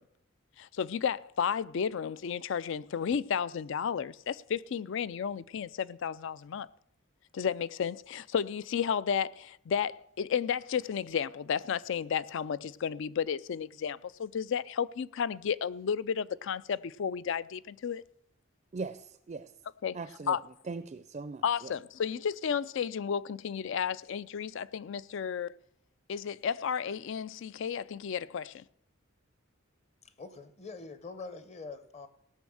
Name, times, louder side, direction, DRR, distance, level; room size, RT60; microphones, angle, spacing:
voice 1, 0.6-6.7 7.3-18.0 19.8-20.0 20.3-20.4 21.4-25.5 26.1-28.6, left 7 dB, 65° left, 0.4 m, -32 dB
voice 2, 18.7-19.5 19.9-20.4 20.7-21.7, right 4 dB, 35° right, 0.4 m, -40 dB
voice 3, 30.2-32.1, left 4 dB, 35° left, 0.9 m, -44 dB
17.5 x 6.2 x 6.3 m
head